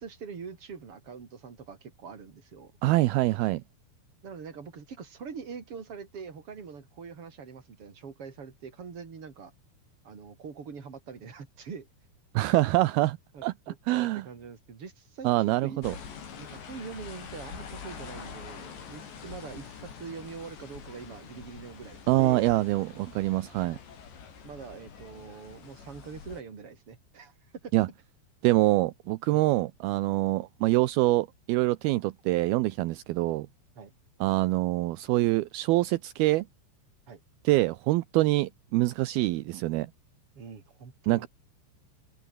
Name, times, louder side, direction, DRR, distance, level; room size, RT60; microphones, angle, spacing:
voice 1, 0.0-2.7 4.2-9.5 10.0-11.9 13.3-15.3 15.6-15.8 16.4-22.5 24.4-27.3 27.6-27.7 29.3-29.4 33.8-33.9 37.1-37.2 40.4-41.3, right 6 dB, 35° right, 4.0 m, -43 dB
voice 2, 2.8-3.6 12.3-13.2 13.4-13.5 13.9-14.3 15.2-16.0 22.1-23.8 27.7-27.9 28.4-33.5 34.2-36.5 37.4-39.9 41.1-41.3, right 18 dB, 80° right, 2.4 m, -25 dB
sound 1, 15.8-26.4, left 6 dB, 80° left, 6.9 m, -45 dB
omnidirectional pair, 5.0 m